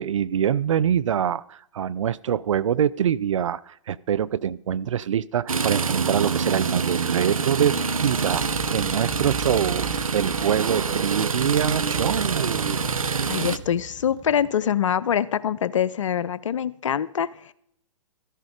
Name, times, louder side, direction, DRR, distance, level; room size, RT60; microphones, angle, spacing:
voice 1, 0.0-12.9, right 9 dB, 65° right, 21 dB, 0.4 m, -25 dB
sound 1, 5.5-13.6, right 5 dB, 85° right, 0.8 m, -26 dB
Motorcycle, 7.7-7.9 8.3-14.5, right 5 dB, 25° right, 1.8 m, -39 dB
voice 2, 13.3-17.5, left 9 dB, 65° left, 18 dB, 0.6 m, -24 dB
14.0 x 11.0 x 4.9 m, 0.70 s
figure-of-eight pair, 120°, 17 cm